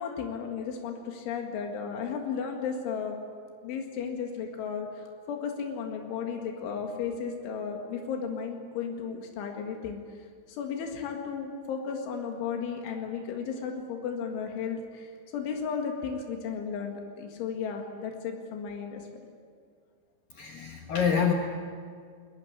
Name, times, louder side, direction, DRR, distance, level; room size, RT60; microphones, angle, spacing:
voice 1, 0.0-3.2 3.6-10.0 10.5-19.0, left 6 dB, 90° left, 2 dB, 4.4 m, -34 dB
voice 2, 20.3-21.3, left 7 dB, 60° left, 2 dB, 2.6 m, -26 dB
22.5 x 18.5 x 9.9 m, 2.1 s
omnidirectional pair, 5.4 m